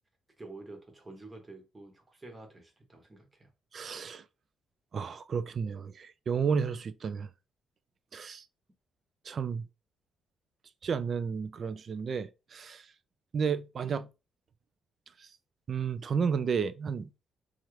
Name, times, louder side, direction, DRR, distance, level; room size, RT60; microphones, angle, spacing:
voice 1, 0.4-3.5, right 2 dB, 20° right, 1.0 m, -49 dB
voice 2, 3.7-4.2 4.9-7.3 8.1-8.4 9.3-9.6 10.8-12.9 13.3-14.1 15.2-15.3 15.7-17.1, right 6 dB, 50° right, 0.3 m, -32 dB
2.8 x 2.4 x 3.1 m
cardioid pair, 90°, 0 cm